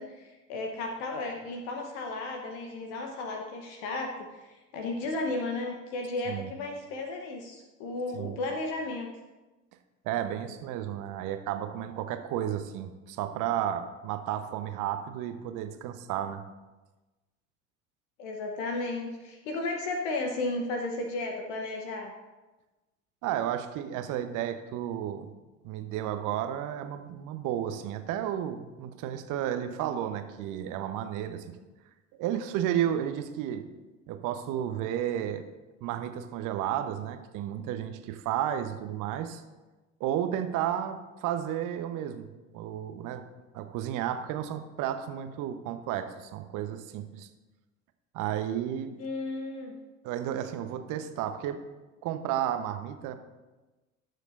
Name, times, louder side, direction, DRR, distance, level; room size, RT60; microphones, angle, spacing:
voice 1, 0.0-9.1 18.2-22.1 49.0-49.8, left 2 dB, 60° left, 2 dB, 1.1 m, -34 dB
voice 2, 10.0-16.4 23.2-25.3 25.6-31.6 32.2-33.6 34.1-35.4 35.8-39.4 40.0-43.2 43.5-47.3 48.1-48.9 50.0-51.6 52.0-53.2, right 10 dB, 50° right, 8 dB, 1.0 m, -32 dB
19.5 x 6.5 x 2.6 m, 1.2 s
figure-of-eight pair, 60°, 39 cm